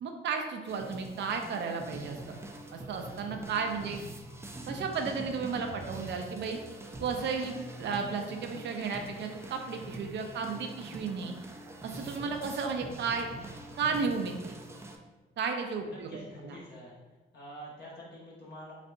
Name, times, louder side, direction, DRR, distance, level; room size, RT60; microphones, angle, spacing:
voice 1, 0.0-2.2 2.7-4.0 4.7-6.6 7.0-11.3 11.8-13.3 13.8-14.5 15.4-16.6, right 5 dB, 65° right, 4 dB, 0.5 m, -33 dB
sound 1, 0.7-15.0, right 1 dB, 15° right, 0.4 m, -44 dB
voice 2, 15.8-16.9 17.3-18.7, equal, 55° left, -6 dB, 1.2 m, -47 dB
4.1 x 3.3 x 2.5 m, 1.2 s
cardioid pair, 90°, 20 cm